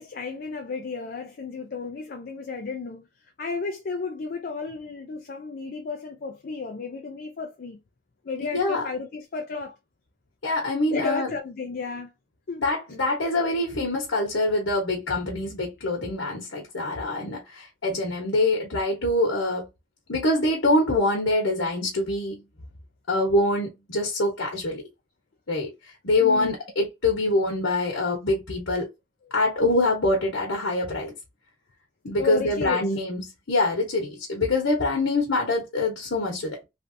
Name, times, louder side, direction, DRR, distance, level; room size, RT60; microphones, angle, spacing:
voice 1, 0.0-3.0 3.4-7.8 8.3-9.7 10.9-12.1 12.5-12.6 26.2-26.5 32.2-32.9, left 4 dB, 45° left, 0.4 m, -33 dB
voice 2, 8.5-8.8 10.4-11.3 12.6-19.7 20.1-22.4 23.1-24.8 25.5-25.7 26.0-28.8 29.3-31.1 32.0-33.2 33.5-36.6, left 2 dB, 75° left, 1.1 m, -24 dB
3.3 x 2.6 x 2.6 m
head